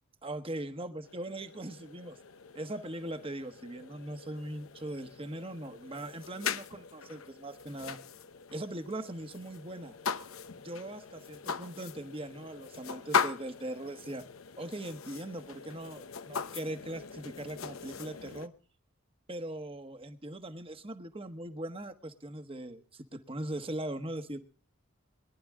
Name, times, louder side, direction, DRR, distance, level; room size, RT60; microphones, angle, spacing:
voice 1, 0.2-2.2 2.5-8.0 8.5-10.0 10.6-14.2 14.6-18.5 19.3-24.4, right 1 dB, 25° right, 9 dB, 1.3 m, -40 dB
sound 1, 1.0-18.5, left 6 dB, 90° left, 0.9 m, -40 dB
22.5 x 11.5 x 3.7 m, 0.38 s
head